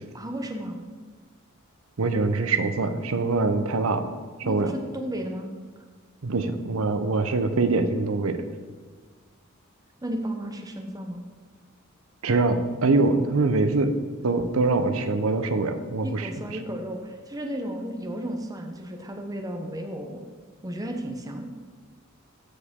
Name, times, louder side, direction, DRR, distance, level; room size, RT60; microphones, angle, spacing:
voice 1, 0.1-0.8 4.4-5.5 10.0-11.2 16.0-20.2 20.6-21.5, equal, 15° right, 3 dB, 0.8 m, -33 dB
voice 2, 2.0-4.0 4.4-4.7 6.2-8.4 12.2-14.0 14.2-16.3, right 3 dB, 80° right, 9 dB, 0.7 m, -24 dB
13.0 x 4.8 x 3.6 m, 1.5 s
head